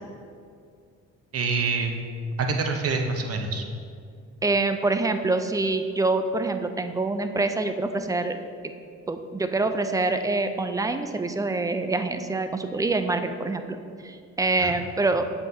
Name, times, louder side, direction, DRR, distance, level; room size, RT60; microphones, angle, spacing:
voice 1, 1.3-2.0 2.4-3.6 14.6-14.8, right 4 dB, 50° right, 4 dB, 0.8 m, -26 dB
voice 2, 4.4-8.4 9.1-13.8 14.0-15.2, right 3 dB, 10° right, 8 dB, 0.3 m, -25 dB
7.4 x 5.6 x 2.7 m, 2.3 s
cardioid pair, 90°, 30 cm